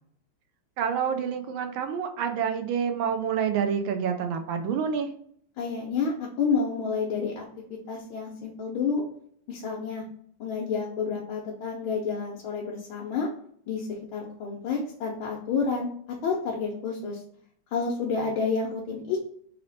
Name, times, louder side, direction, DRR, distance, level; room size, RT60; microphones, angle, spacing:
voice 1, 0.8-5.1, right 7 dB, 75° right, 6 dB, 1.3 m, -28 dB
voice 2, 5.6-7.4 7.9-9.0 9.5-10.0 10.4-13.3 13.7-15.9 16.2-17.2 17.7-19.3, left 5 dB, 75° left, -3 dB, 1.6 m, -29 dB
4.2 x 2.8 x 4.0 m, 0.62 s
omnidirectional pair, 2.3 m